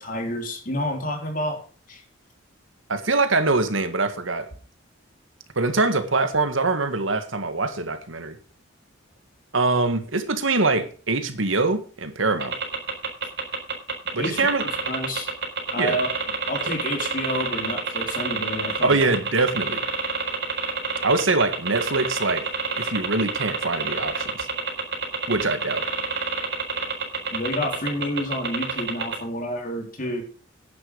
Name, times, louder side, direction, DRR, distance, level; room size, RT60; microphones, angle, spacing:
voice 1, 0.0-1.6 1.9-2.0 14.2-14.4 14.8-15.4 15.7-16.1 16.5-19.1 27.3-30.2, left 1 dB, 45° left, 3.7 m, -29 dB
voice 2, 2.9-4.5 5.6-8.4 9.5-12.6 14.1-14.7 15.8-16.0 18.8-19.8 21.0-22.4 22.8-24.5 25.3-25.8, right 3 dB, 90° right, 1.9 m, -23 dB
sound 1, 12.4-29.1, right 5 dB, 60° right, 4.2 m, -27 dB
10.5 x 10.0 x 5.2 m
head